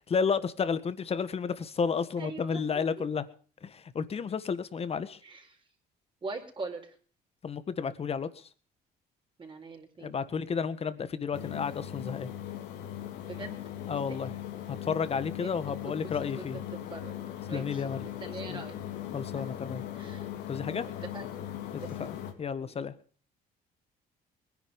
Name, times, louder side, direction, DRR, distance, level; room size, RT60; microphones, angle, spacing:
voice 1, 0.1-3.3 3.6-5.2 7.4-8.4 10.0-12.3 13.9-14.3 14.7-16.6 17.5-18.0 18.5-18.6 19.1-19.8 20.5-20.8 22.0-22.1 22.4-22.9, left 6 dB, 35° left, 1.6 m, -32 dB
voice 2, 2.2-2.8 5.2-5.6 6.2-6.9 9.4-10.1 13.3-13.6 13.9-14.2 15.4-17.2 17.5-18.8 19.3-19.6 19.9-20.3 21.1-21.4 21.8-22.2 22.6-22.8, right 3 dB, 30° right, 4.9 m, -43 dB
sound 1, 11.3-22.3, left 11 dB, 90° left, 3.4 m, -39 dB
21.5 x 10.5 x 5.4 m
cardioid pair, 110°, 17 cm